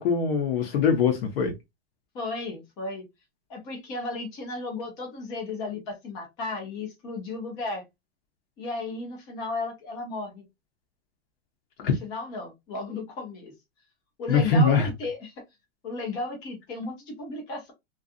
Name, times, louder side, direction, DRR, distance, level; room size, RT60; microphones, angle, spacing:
voice 1, 0.0-1.5 11.8-11.9 14.3-14.9, left 5 dB, 55° left, 0.7 m, -22 dB
voice 2, 2.1-3.1 3.5-7.8 8.6-10.4 11.8-13.5 14.2-15.3 15.8-17.7, left 3 dB, 10° left, 0.3 m, -34 dB
2.6 x 2.3 x 2.4 m
supercardioid pair, 160°, 36 cm